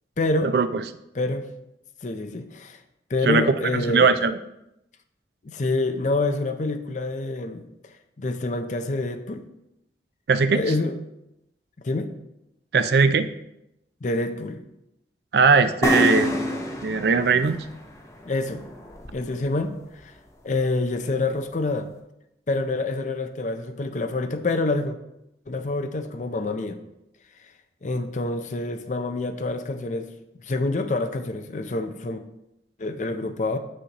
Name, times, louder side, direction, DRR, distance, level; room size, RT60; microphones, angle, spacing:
voice 1, 0.2-0.5 1.1-1.5 2.0-2.8 3.1-4.1 5.4-7.6 8.2-9.4 10.5-11.0 11.8-12.1 14.0-14.6 18.3-18.6 19.1-19.7 20.0-20.1 20.4-21.9 22.5-25.0 25.5-26.8 27.8-30.1 30.4-32.2 32.8-33.6, left 2 dB, 45° left, 8 dB, 0.5 m, -27 dB
voice 2, 3.7-4.4 10.3-10.6 12.7-13.3 15.3-16.4 16.8-17.6, right 5 dB, 65° right, 11 dB, 0.4 m, -19 dB
sound 1, 15.8-19.5, left 1 dB, 15° left, 0.8 m, -27 dB
7.9 x 6.2 x 2.9 m, 0.86 s
head